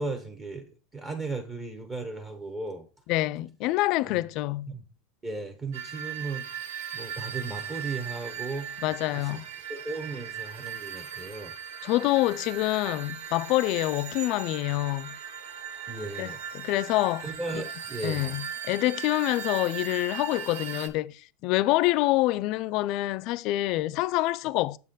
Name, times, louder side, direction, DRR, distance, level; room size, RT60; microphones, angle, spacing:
voice 1, 0.0-2.9 4.1-4.2 4.7-4.8 5.2-6.5 6.9-8.7 9.1-9.4 9.7-11.5 15.9-16.4 17.2-18.4, right 3 dB, 25° right, 1.0 m, -36 dB
voice 2, 3.1-4.7 8.8-9.5 11.8-15.2 16.2-17.6 18.0-24.8, left 17 dB, 55° left, 0.3 m, -26 dB
sound 1, 5.7-20.9, right 8 dB, 80° right, 0.7 m, -38 dB
7.3 x 4.1 x 3.8 m
supercardioid pair, 115°, 0 cm